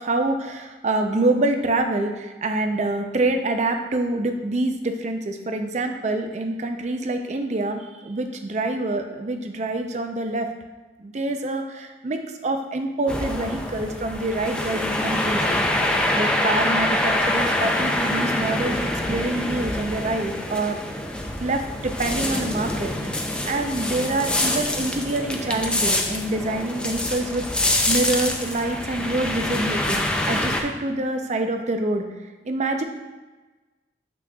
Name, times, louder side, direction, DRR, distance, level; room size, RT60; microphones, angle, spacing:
voice 1, 0.0-10.5 11.0-15.6 16.2-20.8 21.4-23.1 23.5-32.0 32.5-32.8, right 2 dB, 40° right, 6 dB, 0.5 m, -26 dB
sound 1, 13.1-30.6, left 1 dB, 5° left, 0.5 m, -25 dB
7.6 x 6.0 x 2.3 m, 1.2 s
head